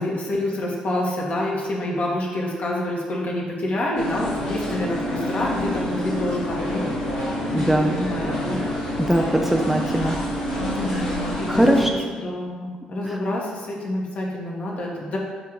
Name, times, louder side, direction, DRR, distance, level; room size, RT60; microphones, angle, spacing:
voice 1, 0.0-6.9 7.9-8.6 9.0-9.1 10.7-15.2, left 1 dB, 45° left, -2 dB, 1.6 m, -27 dB
sound 1, 4.0-11.9, left 1 dB, 75° left, 1.3 m, -27 dB
voice 2, 7.5-7.9 9.1-10.2 10.9-11.0 11.5-11.9, right 1 dB, 5° right, 2 dB, 0.6 m, -20 dB
7.9 x 3.6 x 4.8 m, 1.5 s
figure-of-eight pair, 40°, 3 cm